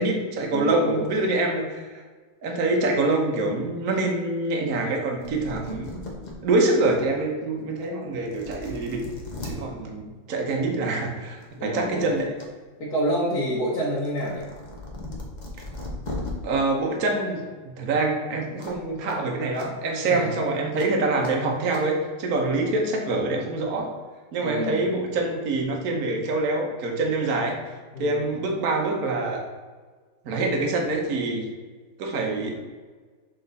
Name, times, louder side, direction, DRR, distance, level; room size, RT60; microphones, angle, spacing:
voice 1, 0.0-2.0 2.4-6.0 6.4-9.0 9.4-12.3 16.4-23.9 24.3-27.6 28.0-29.4 30.2-31.4 32.0-32.5, right 2 dB, 55° right, 1 dB, 1.4 m, -25 dB
voice 2, 0.5-1.1 11.6-12.1 12.8-14.4 20.0-20.3 24.4-24.9 27.9-28.2, equal, 55° left, -9 dB, 1.9 m, -28 dB
sound 1, 4.9-5.0 5.2-6.3 6.9-7.0 7.8-7.9 8.2-9.5 10.8-11.0 11.4-12.5 12.8-16.3 18.6-18.8 19.1-19.2 19.5-19.7 20.8-20.9 21.2-21.3 21.7-21.8, left 2 dB, 30° left, 0.9 m, -37 dB
6.5 x 4.3 x 4.0 m, 1.4 s
omnidirectional pair, 2.0 m